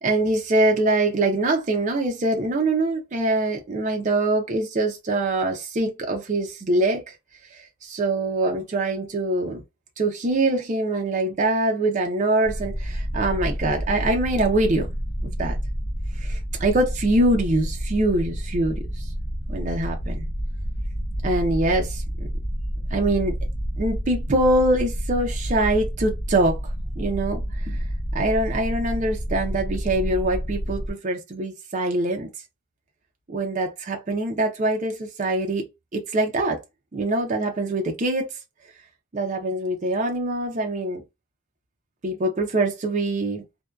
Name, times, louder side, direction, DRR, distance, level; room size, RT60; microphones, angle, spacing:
voice 1, 0.0-7.0 7.5-9.6 10.0-14.9 15.2-15.6 16.2-19.0 19.5-20.3 21.2-22.3 22.9-23.4 23.8-26.6 27.0-27.8 28.1-32.3 33.3-35.6 35.9-36.6 36.9-38.3 39.1-41.0 42.0-43.4, right 2 dB, 35° right, 0.5 m, -24 dB
sound 1, 12.4-30.9, equal, 45° left, 0.9 m, -29 dB
2.6 x 2.2 x 2.2 m
head